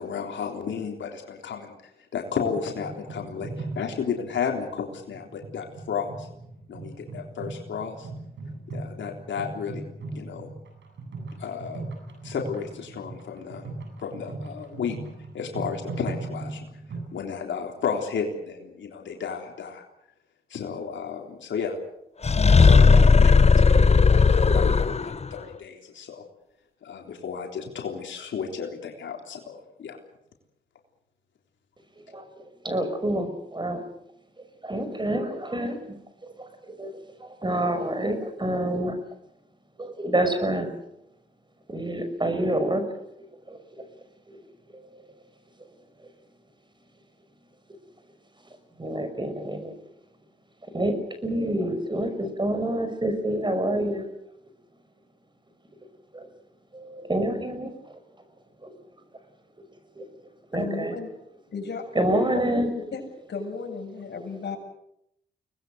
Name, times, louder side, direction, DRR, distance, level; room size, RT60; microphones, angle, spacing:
voice 1, 0.0-6.3 6.7-8.1 8.7-9.8 10.1-10.5 11.4-11.9 12.2-13.7 14.0-15.0 15.3-16.7 17.1-19.8 20.5-21.8 22.6-26.2 26.8-30.0, left 6 dB, 85° left, 2 dB, 3.6 m, -33 dB
sound 1, 2.3-17.1, right 3 dB, 80° right, 7.9 m, -39 dB
sound 2, 22.2-25.3, left 5 dB, 35° left, 0.9 m, -16 dB
voice 2, 32.1-33.8 34.6-35.8 36.2-36.9 37.2-39.0 39.8-40.7 41.7-43.0 43.5-43.9 44.3-44.4 44.7-45.0 48.8-49.7 50.7-54.1 56.1-56.3 56.7-58.0 58.6-58.7 60.0-60.1 60.5-60.9 61.9-62.7, right 1 dB, 25° right, 8 dB, 5.8 m, -28 dB
voice 3, 60.5-61.1 61.5-61.8 62.3-63.0 63.3-64.6, left 4 dB, 65° left, 2 dB, 7.3 m, -34 dB
24.0 x 19.5 x 8.0 m, 0.80 s
cardioid pair, 65°, 19 cm